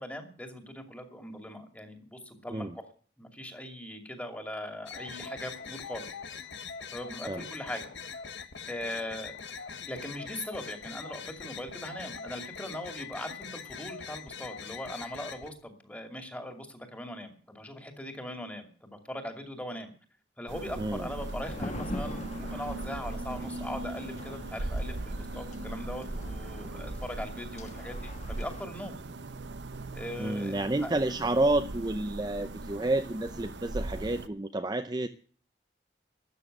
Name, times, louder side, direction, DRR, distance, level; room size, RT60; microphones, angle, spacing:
voice 1, 0.0-2.8 3.2-6.1 6.9-7.9 8.7-9.4 9.9-19.9 20.4-29.0 29.9-30.9, left 1 dB, 10° left, 5 dB, 2.5 m, -40 dB
sound 1, 4.9-15.5, left 6 dB, 85° left, 1.4 m, -42 dB
sound 2, 20.5-34.3, right 2 dB, 75° right, 0.9 m, -39 dB
voice 2, 20.8-21.1 30.2-35.1, right 2 dB, 20° right, 7 dB, 0.6 m, -30 dB
sound 3, 21.2-28.6, left 1 dB, 40° left, 1.4 m, -44 dB
13.0 x 9.1 x 8.0 m, 0.43 s
head